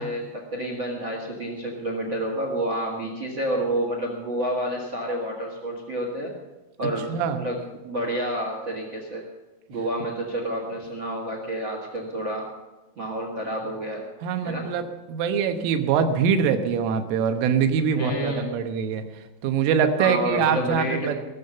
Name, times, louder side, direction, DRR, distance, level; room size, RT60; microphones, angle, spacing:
voice 1, 0.0-6.3 6.8-9.2 9.7-12.5 12.9-14.1 14.4-14.7 17.9-18.5 20.0-21.1, right 1 dB, 60° right, 1 dB, 1.2 m, -29 dB
voice 2, 7.1-7.4 14.2-19.0 19.4-21.2, right 7 dB, 85° right, 7 dB, 3.7 m, -23 dB
21.0 x 7.3 x 6.7 m, 1.1 s
omnidirectional pair, 5.6 m